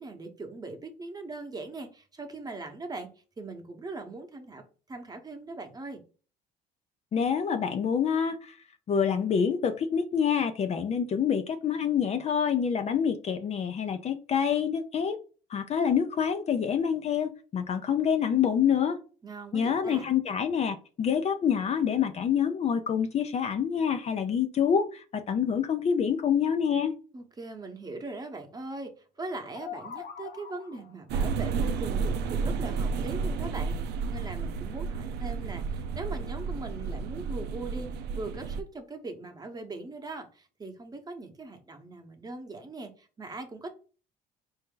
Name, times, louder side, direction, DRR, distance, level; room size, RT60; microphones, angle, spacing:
voice 1, 0.0-3.1 3.4-4.6 4.9-6.0 19.2-20.0 27.1-28.9 29.2-43.7, right 2 dB, 25° right, 1.0 m, -40 dB
voice 2, 7.1-8.5 8.9-15.2 15.5-19.0 19.5-26.9, left 7 dB, 40° left, 0.5 m, -27 dB
sound 1, 29.2-31.0, left 8 dB, 70° left, 0.9 m, -43 dB
sound 2, 31.1-38.6, right 5 dB, 80° right, 0.5 m, -31 dB
4.4 x 2.7 x 3.8 m
cardioid pair, 110°, 17 cm